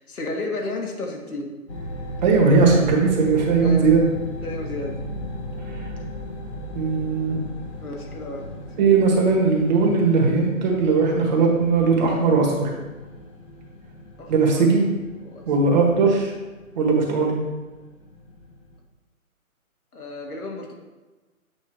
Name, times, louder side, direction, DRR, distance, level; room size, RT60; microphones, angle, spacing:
voice 1, 0.0-1.6 3.6-4.0 4.4-5.0 7.8-8.5 14.2-14.7 15.2-15.8 19.9-20.7, left 2 dB, 80° left, 1 dB, 2.0 m, -32 dB
sound 1, 1.7-18.8, left 1 dB, 20° left, 0.7 m, -37 dB
voice 2, 2.2-4.1 6.7-7.4 8.8-12.7 14.3-14.8 15.5-16.3 16.7-17.4, right 4 dB, 30° right, -1 dB, 1.6 m, -18 dB
8.4 x 4.0 x 4.7 m, 1.2 s
hypercardioid pair, 155°, 43 cm